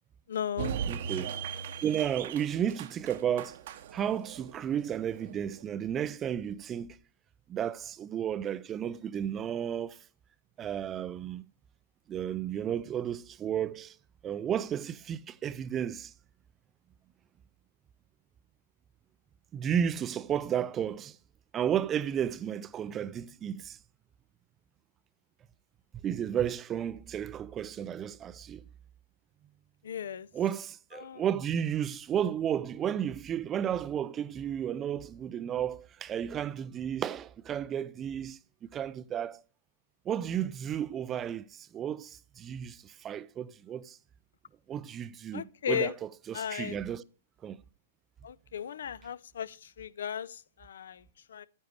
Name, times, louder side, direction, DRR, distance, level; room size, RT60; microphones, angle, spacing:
voice 1, 0.3-0.7 29.8-30.3 31.0-31.2 45.3-45.9 46.3-46.8 48.2-50.3 50.6-51.0 51.3-51.5, left 9 dB, 70° left, 0.5 m, -35 dB
sound 1, 0.6-5.6, right 7 dB, 50° right, 0.8 m, -38 dB
voice 2, 0.9-3.6 3.9-7.0 7.5-10.0 10.6-11.4 12.1-13.9 14.2-16.1 19.5-21.2 21.5-23.8 26.0-28.6 30.3-38.4 38.7-39.4 40.1-44.0 44.7-47.0 47.4-47.6, right 9 dB, 15° right, 0.3 m, -33 dB
9.6 x 9.1 x 3.2 m
hypercardioid pair, 155°, 0 cm